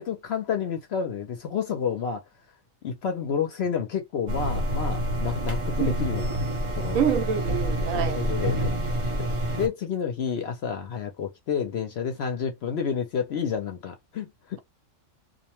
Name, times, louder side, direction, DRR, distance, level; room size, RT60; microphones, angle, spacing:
voice 1, 0.0-2.2 2.8-6.4 6.8-7.0 7.9-8.8 9.2-14.6, left 7 dB, 60° left, 0.8 m, -30 dB
sound 1, 4.3-9.7, equal, 30° right, 0.6 m, -27 dB
voice 2, 6.9-8.2, right 8 dB, 85° right, 1.0 m, -26 dB
2.4 x 2.1 x 2.9 m
omnidirectional pair, 1.3 m